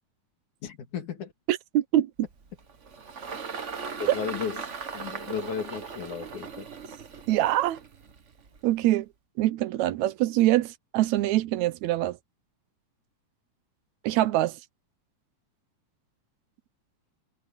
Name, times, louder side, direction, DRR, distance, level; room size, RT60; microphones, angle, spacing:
voice 1, 0.6-1.3 4.0-6.7, left 7 dB, 80° left, 4.1 m, -35 dB
voice 2, 1.5-2.1 7.3-7.8 8.6-9.1 9.4-12.2 14.0-14.6, right 14 dB, 80° right, 2.0 m, -24 dB
Engine, 2.2-8.8, right 5 dB, 45° right, 0.9 m, -39 dB
omnidirectional pair, 3.4 m